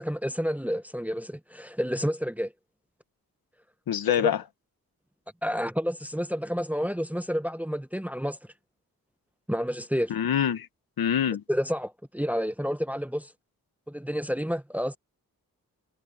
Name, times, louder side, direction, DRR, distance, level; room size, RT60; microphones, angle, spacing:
voice 1, 0.0-2.5 4.2-4.3 5.4-8.4 9.5-10.1 11.5-13.3 13.9-15.0, equal, 5° right, 1.2 m, -29 dB
voice 2, 3.9-4.4 10.1-10.7 11.0-11.4, left 9 dB, 80° left, 1.5 m, -25 dB
cardioid pair, 45°, 36 cm